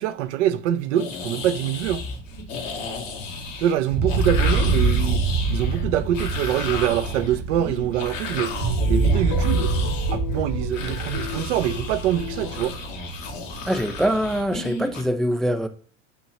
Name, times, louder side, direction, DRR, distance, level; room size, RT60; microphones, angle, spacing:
voice 1, 0.0-2.1 3.6-5.2 5.5-8.5 8.9-9.7 10.1-12.8, right 11 dB, 65° right, 0.7 m, -24 dB
sound 1, 0.9-15.0, left 4 dB, 80° left, 1.9 m, -34 dB
sound 2, 1.8-3.6 3.9-14.6, right 3 dB, 40° right, 1.1 m, -26 dB
sound 3, 8.7-12.8, left 13 dB, 45° left, 0.9 m, -37 dB
voice 2, 13.7-15.7, equal, ahead, 0.4 m, -23 dB
8.3 x 3.0 x 6.0 m
hypercardioid pair, 85°, 38 cm